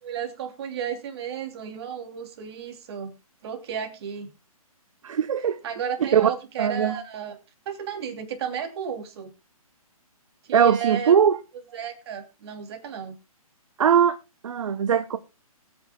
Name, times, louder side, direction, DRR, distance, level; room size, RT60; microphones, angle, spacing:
voice 1, 0.0-3.1 3.4-4.3 5.4-7.4 7.6-9.3 10.4-11.2 11.7-13.1, right 8 dB, 45° right, 2.9 m, -33 dB
voice 2, 5.0-5.6 6.1-6.3 6.6-7.0 10.5-11.4 13.8-14.2 14.4-15.2, right 8 dB, 60° right, 0.9 m, -20 dB
22.0 x 8.9 x 2.3 m
figure-of-eight pair, 140°, 19 cm